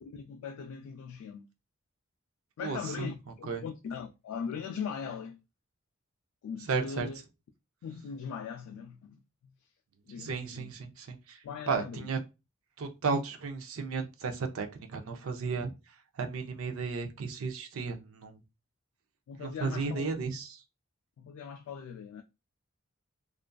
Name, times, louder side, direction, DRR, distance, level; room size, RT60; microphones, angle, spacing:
voice 1, 0.0-1.4 2.6-5.4 6.4-7.2 7.8-9.5 10.1-10.7 11.4-12.1 19.3-20.2 21.2-22.2, left 6 dB, 85° left, 0.3 m, -40 dB
voice 2, 2.6-3.1 3.5-3.6 6.7-7.1 10.2-11.4 11.7-12.2 12.8-14.7 14.9-15.7 16.2-18.3 19.4-20.5, right 4 dB, 75° right, 0.5 m, -34 dB
2.4 x 2.3 x 2.2 m
head